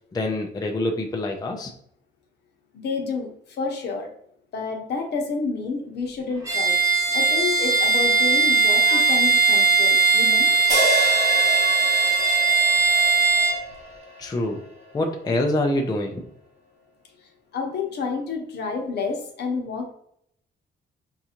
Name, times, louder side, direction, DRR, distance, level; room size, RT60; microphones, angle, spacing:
voice 1, 0.1-1.8 14.2-14.6 14.9-16.3, left 1 dB, 20° left, 2 dB, 0.4 m, -25 dB
voice 2, 2.7-4.1 4.5-6.8 7.1-10.5 17.5-19.9, left 4 dB, 65° left, 3 dB, 0.8 m, -29 dB
Bowed string instrument, 6.4-13.6, right 5 dB, 15° right, 1.2 m, -19 dB
sound 1, 10.7-15.0, equal, 35° right, 0.9 m, -29 dB
4.5 x 2.5 x 2.9 m, 0.68 s
cardioid pair, 125°, 19 cm